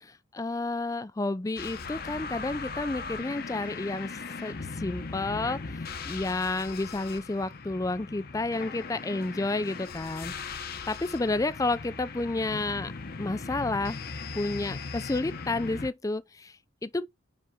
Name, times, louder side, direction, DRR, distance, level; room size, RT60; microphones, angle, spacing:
voice 1, 0.3-4.1 4.4-5.6 6.1-10.3 10.9-12.9 13.2-14.0 14.3-16.5 16.8-17.1, left 2 dB, 15° left, 0.3 m, -30 dB
sound 1, 1.6-15.9, left 4 dB, 45° left, 0.8 m, -39 dB
5.5 x 5.1 x 3.5 m
head